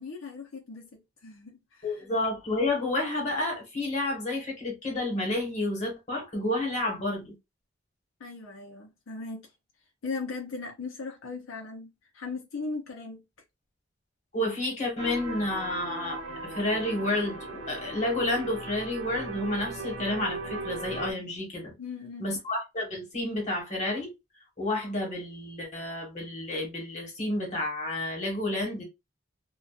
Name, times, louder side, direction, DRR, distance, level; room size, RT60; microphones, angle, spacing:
voice 1, 0.0-2.0 8.2-9.5 10.0-13.2 21.8-22.3, left 4 dB, 85° left, 0.6 m, -38 dB
voice 2, 1.8-7.3 14.3-21.7 22.2-24.1 24.6-28.8, left 1 dB, 35° left, 1.3 m, -30 dB
sound 1, 15.0-21.1, right 3 dB, 80° right, 0.6 m, -38 dB
2.5 x 2.2 x 2.3 m
head